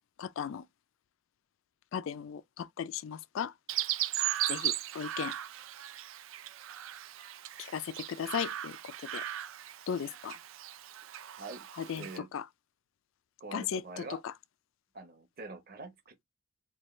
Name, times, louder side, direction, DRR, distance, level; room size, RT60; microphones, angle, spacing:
voice 1, 0.2-0.6 1.9-3.5 4.5-5.3 7.6-8.8 9.1-9.2 9.9-10.4 11.8-12.4 13.5-14.1, left 7 dB, 65° left, 0.3 m, -36 dB
Chirp tweet, 3.7-12.2, right 13 dB, 70° right, 0.4 m, -37 dB
voice 2, 12.0-12.3 13.4-14.2 14.9-16.2, right 3 dB, 45° right, 0.9 m, -45 dB
4.5 x 2.3 x 3.1 m
head